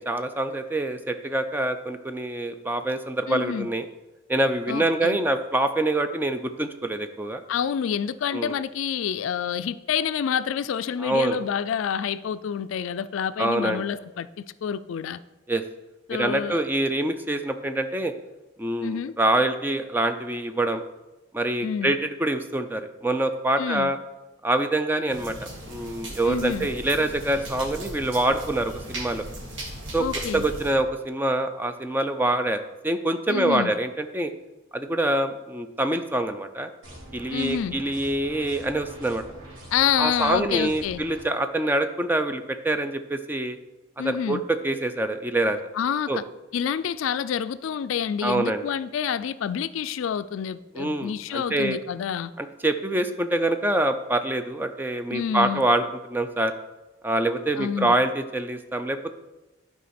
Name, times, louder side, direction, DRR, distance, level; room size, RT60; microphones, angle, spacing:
voice 1, 0.0-3.9 4.3-7.4 8.3-8.6 11.0-11.4 13.4-13.8 15.5-15.6 16.1-18.1 18.6-20.8 21.3-24.0 24.4-29.2 29.9-30.1 30.3-32.6 32.8-34.3 34.7-36.7 37.1-39.2 40.0-43.6 44.0-45.6 46.1-46.2 48.2-48.6 50.8-51.8 52.4-56.5 57.0-59.1, right 1 dB, 10° right, 0.4 m, -25 dB
voice 2, 3.3-3.7 4.7-5.2 7.5-15.2 16.1-16.6 18.8-19.1 21.6-21.9 23.6-23.9 26.3-26.7 30.0-30.5 33.3-33.7 37.3-37.8 39.7-41.0 44.0-44.4 45.7-46.2 46.5-52.3 55.1-55.6 57.6-57.9, left 8 dB, 75° left, 0.3 m, -28 dB
sound 1, 25.1-30.8, right 1 dB, 65° right, 1.7 m, -37 dB
sound 2, 36.8-41.2, right 1 dB, 85° right, 3.0 m, -44 dB
11.5 x 4.7 x 4.3 m
head